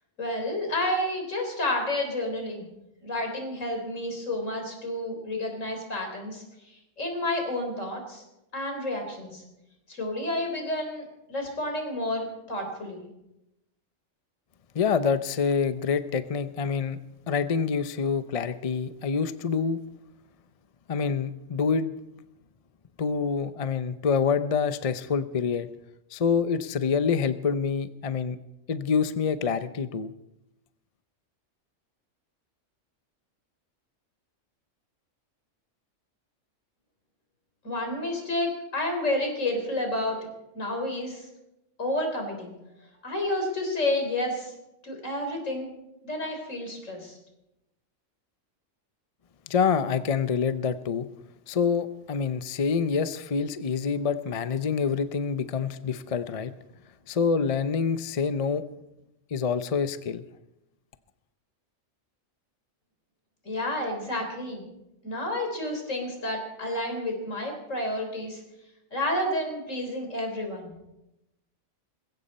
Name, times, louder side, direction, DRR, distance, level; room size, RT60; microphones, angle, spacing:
voice 1, 0.2-2.7 3.0-8.2 8.5-9.4 9.9-13.0 37.6-40.2 40.5-41.3 41.8-42.5 43.0-44.5 44.8-45.7 46.0-47.2 63.4-64.6 65.0-68.4 68.9-70.7, left 1 dB, 75° left, 3 dB, 4.2 m, -30 dB
voice 2, 14.7-17.0 17.3-19.8 20.9-21.9 23.0-25.7 26.1-28.4 28.7-30.1 49.5-51.1 51.5-56.5 57.1-58.6 59.3-60.2, left 6 dB, 40° left, 12 dB, 0.6 m, -26 dB
20.5 x 16.0 x 4.3 m, 0.90 s
omnidirectional pair, 1.3 m